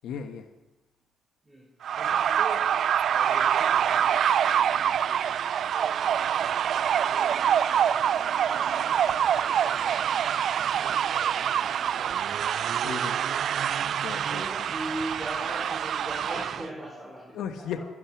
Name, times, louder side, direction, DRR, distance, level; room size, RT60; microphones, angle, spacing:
voice 1, 0.0-0.5 8.4-8.5 12.8-13.3 13.8-14.7 17.3-17.8, left 8 dB, 80° left, 7 dB, 1.1 m, -36 dB
sound 1, 1.8-16.7, right 9 dB, 65° right, 0.4 m, -25 dB
voice 2, 2.0-2.8 3.1-6.0 6.7-10.1 10.7-12.3 13.7-13.9 14.3-17.4, right 1 dB, 5° right, -5 dB, 5.1 m, -41 dB
Wind instrument woodwind instrument, 6.3-15.4, right 3 dB, 25° right, 1.8 m, -51 dB
16.0 x 12.0 x 5.9 m, 1.1 s
cardioid pair, 90°, 0 cm